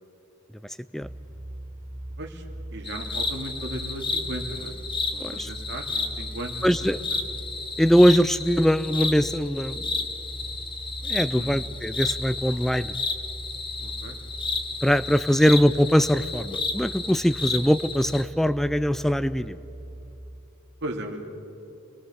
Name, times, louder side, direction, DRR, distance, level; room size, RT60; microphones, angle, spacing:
sound 1, 1.0-20.2, right 1 dB, 40° right, 3.2 m, -40 dB
voice 1, 2.7-4.8 5.1-7.2 11.3-11.6 13.8-14.2 20.8-21.3, right 1 dB, 55° right, 2 dB, 2.6 m, -36 dB
sound 2, 2.8-18.2, left 3 dB, 25° left, 1.3 m, -32 dB
voice 2, 6.6-7.0 7.8-9.9 11.1-12.9 14.8-19.6, equal, ahead, 14 dB, 0.5 m, -22 dB
29.0 x 19.5 x 7.1 m, 2.8 s
head